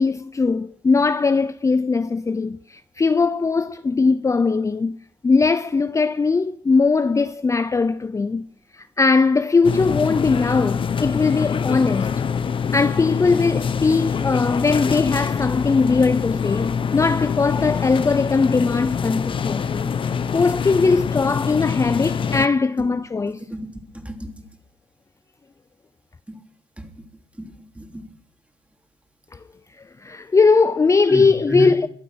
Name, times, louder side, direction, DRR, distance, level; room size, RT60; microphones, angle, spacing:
voice 1, 0.0-5.0 5.2-8.5 8.7-12.1 12.7-19.9 20.3-23.4 30.0-31.9, left 4 dB, 25° left, 0.6 m, -20 dB
sound 1, 9.6-22.5, left 6 dB, 50° left, 1.1 m, -25 dB
voice 2, 23.9-24.3 26.3-26.4 26.8-27.0 27.4-28.1 31.1-31.7, right 2 dB, 10° right, 3.1 m, -31 dB
22.0 x 8.7 x 6.2 m
supercardioid pair, 55°, 11 cm